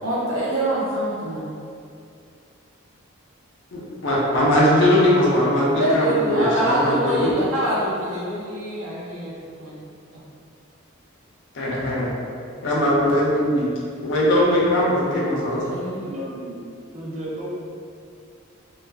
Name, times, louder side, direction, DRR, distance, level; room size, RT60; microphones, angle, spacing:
voice 1, 0.0-1.5 5.7-9.8 10.1-10.2 15.5-16.0, right 1 dB, 75° right, -7 dB, 0.7 m, -25 dB
voice 2, 3.7-7.3 11.5-12.1 12.6-13.7 14.0-15.8, left 1 dB, 55° left, -6 dB, 0.5 m, -20 dB
voice 3, 16.0-16.6 16.9-17.5, right 1 dB, 30° right, -5 dB, 0.4 m, -33 dB
2.3 x 2.3 x 2.3 m, 2.4 s
head